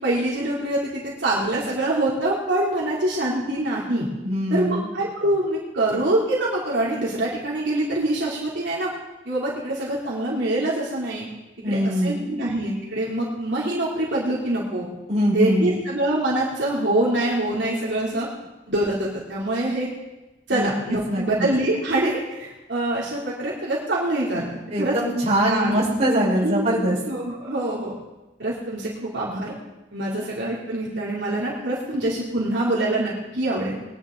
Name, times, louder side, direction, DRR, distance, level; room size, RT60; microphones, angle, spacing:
voice 1, 0.0-4.1 4.5-8.9 9.2-11.3 11.7-14.9 15.3-18.3 18.7-19.9 20.5-24.9 25.5-25.8 26.4-26.7 27.1-27.9 28.4-29.5 29.9-33.8, right 1 dB, 70° right, -6 dB, 3.2 m, -25 dB
voice 2, 4.2-4.9 11.6-12.4 15.1-15.8 18.1-18.2 20.5-20.7 21.1-21.5 24.7-27.0, equal, 35° right, -5 dB, 4.9 m, -23 dB
21.0 x 10.5 x 3.9 m, 1.0 s
head